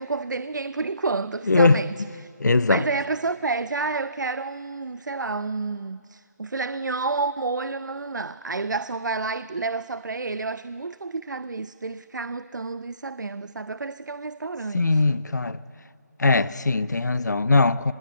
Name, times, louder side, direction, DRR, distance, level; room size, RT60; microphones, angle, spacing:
voice 1, 0.0-2.3 2.7-15.0, right 3 dB, 75° right, 0.6 m, -30 dB
voice 2, 1.5-1.8 2.4-2.8 14.7-15.6 16.2-17.9, left 3 dB, 65° left, 0.7 m, -20 dB
25.0 x 20.0 x 7.6 m
figure-of-eight pair, 175°, 10 cm